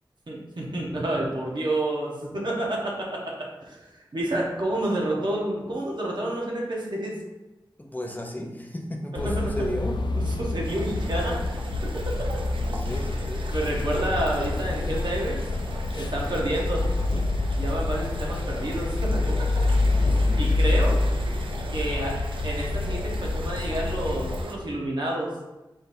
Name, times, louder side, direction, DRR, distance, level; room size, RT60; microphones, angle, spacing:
voice 1, 0.3-7.1 9.2-9.4 10.2-11.6 12.1-12.3 13.5-15.4 16.0-16.8 17.6-19.5 20.4-21.0 21.7-22.2 22.4-25.3, right 1 dB, 65° right, -3 dB, 1.1 m, -29 dB
voice 2, 7.8-10.0 12.6-13.5 19.8-20.4, left 1 dB, 20° left, 0 dB, 0.6 m, -34 dB
sound 1, 9.2-24.4, left 2 dB, 65° left, 0.3 m, -27 dB
sound 2, 10.6-24.5, right 3 dB, 90° right, 0.4 m, -41 dB
4.1 x 3.8 x 2.6 m, 1.1 s
wide cardioid pair, 50°, 8 cm